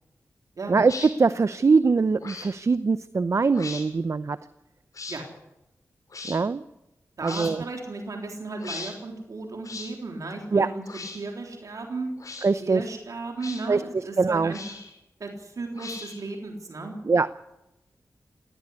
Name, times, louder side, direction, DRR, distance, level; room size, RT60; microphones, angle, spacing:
voice 1, 0.7-4.4 6.3-6.6 7.2-7.6 10.5-10.7 12.4-12.8 13.7-13.8 14.2-14.5 17.0-17.4, right 4 dB, 55° right, 14 dB, 0.7 m, -22 dB
sound 1, 0.8-1.1 2.2-2.5 3.5-3.8 4.9-5.2 6.1-6.4 7.2-7.5 8.6-8.9 9.6-9.9 10.8-11.2 12.2-12.5 13.4-13.6 14.5-14.9 15.7-16.3, left 3 dB, 70° left, 7.3 m, -38 dB
voice 2, 7.2-10.8 11.1-12.1 12.6-14.6 15.2-16.9, right 3 dB, 70° right, 2 dB, 3.6 m, -35 dB
17.5 x 17.5 x 9.9 m, 0.92 s
cardioid pair, 50°, 6 cm